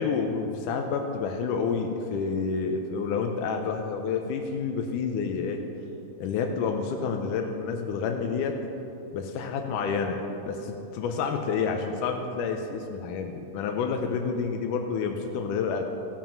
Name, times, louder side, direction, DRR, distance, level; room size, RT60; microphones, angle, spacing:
voice 1, 0.0-5.6 6.2-8.6 9.1-15.8, left 5 dB, 80° left, 3 dB, 2.0 m, -29 dB
15.5 x 7.4 x 5.9 m, 2.9 s
omnidirectional pair, 4.1 m